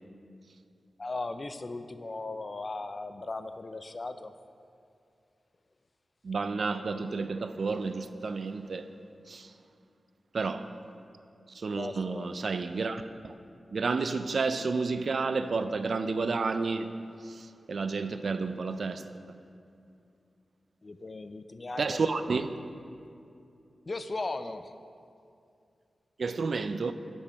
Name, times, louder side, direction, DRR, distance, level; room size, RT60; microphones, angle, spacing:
voice 1, 1.0-4.3 11.7-12.3 20.8-22.0 23.9-24.7, left 3 dB, 35° left, 0.3 m, -37 dB
voice 2, 6.2-8.9 9.3-9.5 10.3-10.7 11.5-13.3 13.7-17.0 17.2-19.1 21.8-22.5 26.2-26.9, right 4 dB, 60° right, 0.4 m, -31 dB
8.8 x 6.3 x 5.5 m
wide cardioid pair, 125°, 0 cm